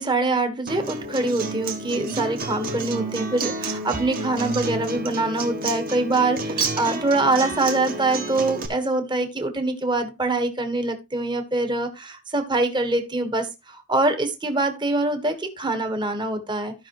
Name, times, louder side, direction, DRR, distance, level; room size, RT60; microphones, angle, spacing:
voice 1, 0.0-16.7, right 2 dB, 20° right, 6 dB, 1.4 m, -24 dB
Acoustic guitar, 0.7-8.7, right 3 dB, 45° right, 1.7 m, -30 dB
14.5 x 5.6 x 3.1 m, 0.24 s
head